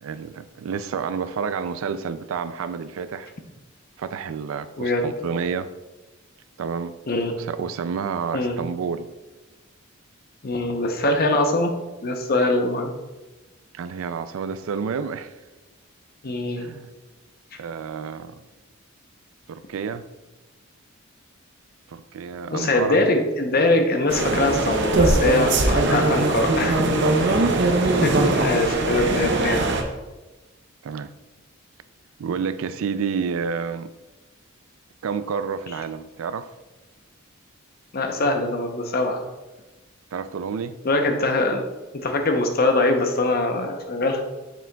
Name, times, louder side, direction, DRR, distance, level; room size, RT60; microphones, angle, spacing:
voice 1, 0.0-3.3 4.0-5.7 6.6-7.0 7.4-9.1 13.7-15.3 16.6-16.9 17.6-18.4 19.5-20.1 21.9-23.0 25.8-26.3 26.7-27.6 30.8-31.1 32.2-33.9 35.0-36.5 40.1-40.8, right 6 dB, 75° right, 13 dB, 0.3 m, -30 dB
voice 2, 4.8-5.1 7.1-7.3 8.3-8.6 10.4-11.7 12.0-12.9 16.2-16.7 22.5-26.8 28.0-29.7 37.9-39.2 40.8-41.6 42.0-44.2, left 2 dB, 45° left, 4 dB, 0.7 m, -22 dB
sound 1, 24.1-29.8, right 2 dB, 55° right, 0.7 m, -21 dB
6.9 x 6.1 x 2.3 m, 1.1 s
head